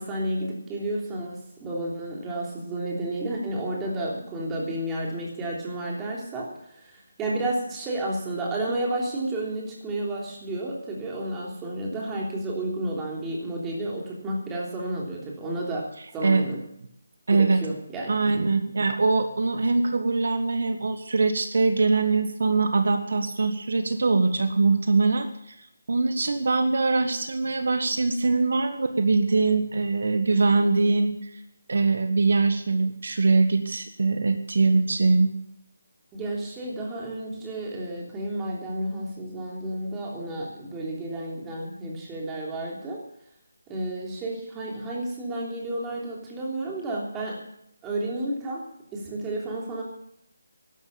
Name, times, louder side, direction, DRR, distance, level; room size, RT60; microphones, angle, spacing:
voice 1, 0.0-15.9 16.1-16.6 17.6-18.5 28.5-28.6 36.1-43.0 43.7-47.4 47.8-48.6 48.9-49.8, right 1 dB, 10° right, -3 dB, 3.2 m, -31 dB
voice 2, 17.3-17.6 18.1-25.5 25.9-31.3 31.7-35.3, right 3 dB, 60° right, 7 dB, 1.4 m, -22 dB
12.5 x 12.0 x 7.2 m, 0.74 s
figure-of-eight pair, 170°, 0 cm